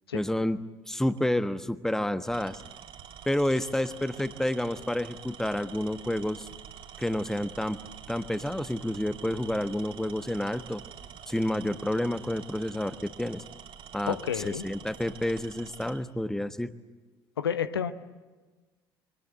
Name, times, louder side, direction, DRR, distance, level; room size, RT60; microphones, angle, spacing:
voice 1, 0.1-0.6 0.9-2.6 3.3-6.5 7.0-7.8 8.1-10.8 11.3-13.4 13.9-16.7, left 1 dB, 5° left, 13 dB, 1.2 m, -29 dB
Tools, 1.1-1.4 2.2-16.0, right 9 dB, 45° right, 2.5 m, -47 dB
voice 2, 14.1-14.6 17.4-17.9, left 8 dB, 75° left, 13 dB, 1.0 m, -30 dB
27.5 x 24.0 x 8.1 m, 1.2 s
figure-of-eight pair, 60°, 13 cm